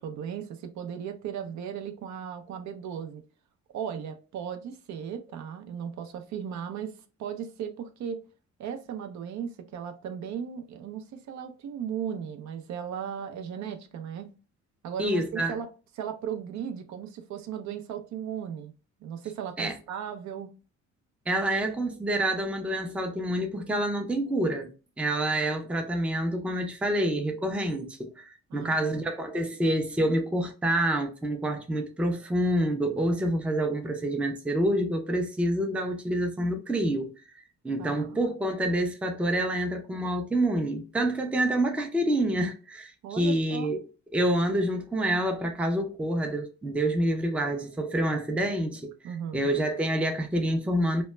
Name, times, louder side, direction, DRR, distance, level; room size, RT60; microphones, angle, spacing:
voice 1, 0.0-3.2 3.7-8.2 8.6-14.3 14.8-15.7 16.0-18.7 19.0-20.5 28.5-28.8 37.8-38.2 43.0-43.7 49.0-49.5, right 8 dB, 70° right, 0.5 m, -36 dB
voice 2, 15.0-15.6 19.6-19.8 21.3-24.7 25.0-37.1 37.6-43.9 44.1-51.0, right 1 dB, 5° right, 0.4 m, -27 dB
2.1 x 2.0 x 3.1 m
cardioid pair, 90°, 30 cm